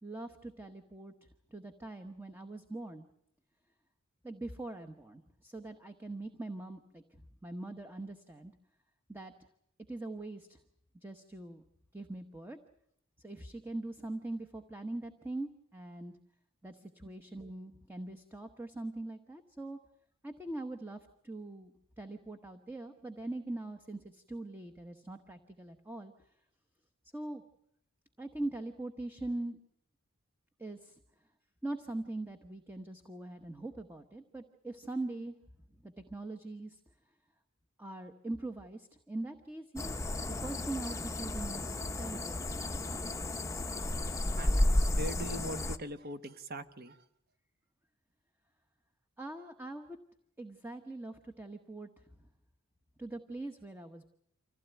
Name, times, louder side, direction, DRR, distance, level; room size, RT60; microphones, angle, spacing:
voice 1, 0.0-1.1 1.5-3.0 4.2-8.5 9.1-9.3 9.9-10.6 11.0-11.6 11.9-12.6 13.2-16.1 16.6-19.8 20.2-26.1 27.1-27.4 28.2-29.6 30.6-31.0 31.6-35.3 35.8-36.8 37.8-42.8 49.2-50.0 50.4-52.1 53.0-54.1, right 2 dB, 10° right, 6 dB, 1.0 m, -42 dB
sound 1, 39.8-45.8, left 1 dB, 15° left, 0.8 m, -32 dB
voice 2, 44.9-47.0, equal, 45° right, 10 dB, 1.2 m, -41 dB
26.0 x 16.0 x 9.1 m, 0.78 s
head